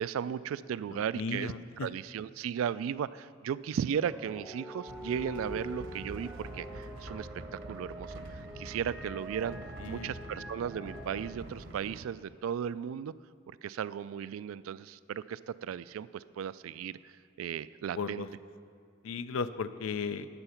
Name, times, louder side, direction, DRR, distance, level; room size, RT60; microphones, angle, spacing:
voice 1, 0.0-1.5 1.8-9.6 9.9-13.1 13.6-17.0 17.4-18.3, right 8 dB, 85° right, 17 dB, 0.3 m, -36 dB
voice 2, 0.9-1.9 9.8-10.1 17.9-18.3 19.0-20.3, left 5 dB, 90° left, 13 dB, 0.5 m, -36 dB
sound 1, 4.0-11.3, equal, ahead, 0.6 m, -45 dB
sound 2, 4.9-12.0, right 1 dB, 65° right, 0.8 m, -46 dB
11.5 x 7.9 x 5.7 m, 2.1 s
head